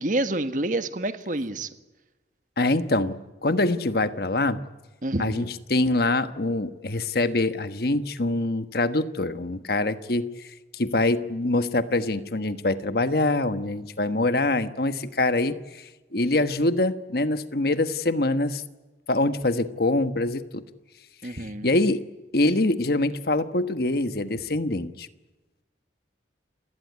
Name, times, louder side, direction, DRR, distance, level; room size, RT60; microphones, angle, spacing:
voice 1, 0.0-1.7 5.0-5.5 21.2-21.7, right 1 dB, 45° right, 10 dB, 1.6 m, -28 dB
voice 2, 2.6-4.6 5.2-18.6 19.1-20.6 21.2-22.0 22.3-25.1, left 2 dB, 55° left, 11 dB, 1.3 m, -25 dB
29.0 x 18.0 x 9.5 m, 1.1 s
head